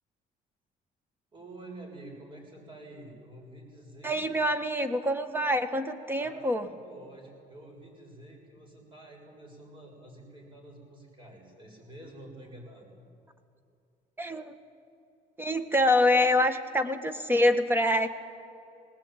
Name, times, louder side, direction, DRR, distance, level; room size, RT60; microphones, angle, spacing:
voice 1, 1.3-4.2 6.2-12.9, right 1 dB, 30° right, 1 dB, 7.0 m, -48 dB
voice 2, 4.0-6.7 14.2-14.5 15.4-18.1, left 1 dB, 10° right, 9 dB, 1.5 m, -25 dB
20.0 x 19.0 x 9.0 m, 2.7 s
cardioid pair, 110°, 17 cm